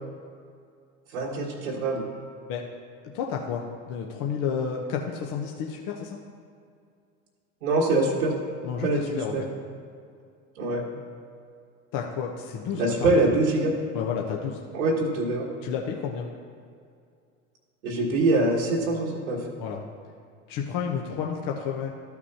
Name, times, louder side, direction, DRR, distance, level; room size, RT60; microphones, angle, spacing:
voice 1, 1.1-2.0 7.6-8.3 8.8-9.4 10.6-10.8 12.7-13.7 14.7-15.5 17.8-19.4, right 2 dB, 80° right, -5 dB, 1.6 m, -24 dB
voice 2, 3.1-6.2 8.6-9.5 11.9-13.1 13.9-14.6 15.6-16.3 19.6-19.8 20.5-21.9, left 7 dB, 50° left, 0 dB, 1.0 m, -31 dB
13.5 x 6.1 x 2.9 m, 2.3 s
hypercardioid pair, 75°, 41 cm